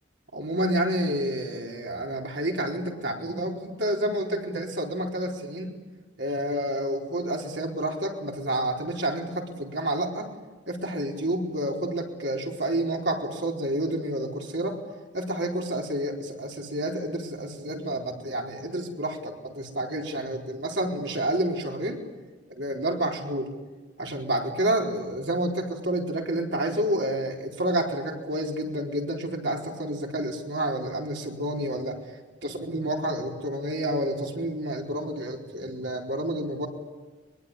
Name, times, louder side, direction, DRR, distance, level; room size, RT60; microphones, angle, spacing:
voice 1, 0.3-5.7 6.2-10.3 10.7-14.8 15.1-22.0 22.6-23.5 24.0-32.0 32.4-36.7, right 1 dB, 70° right, 1 dB, 4.4 m, -29 dB
23.5 x 23.0 x 10.0 m, 1.2 s
head